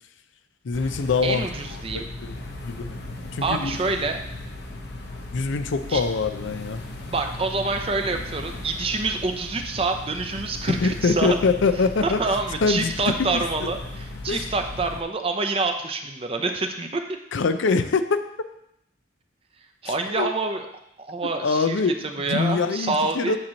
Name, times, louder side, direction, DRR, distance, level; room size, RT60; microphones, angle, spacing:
voice 1, 0.6-1.4 1.9-2.4 2.6-2.9 3.3-3.8 5.3-6.8 10.7-12.2 12.6-13.7 14.3-14.5 17.3-18.2 19.9-20.3 21.4-23.4, left 4 dB, 75° left, 10 dB, 0.5 m, -24 dB
sound 1, 0.7-15.0, left 2 dB, 55° left, 0.9 m, -37 dB
voice 2, 1.2-2.1 3.4-4.2 5.9-6.0 7.1-11.3 12.0-17.0 19.8-20.7 21.0-21.7 22.0-23.4, right 3 dB, 30° right, 5 dB, 0.6 m, -27 dB
8.6 x 3.0 x 6.2 m, 0.78 s
head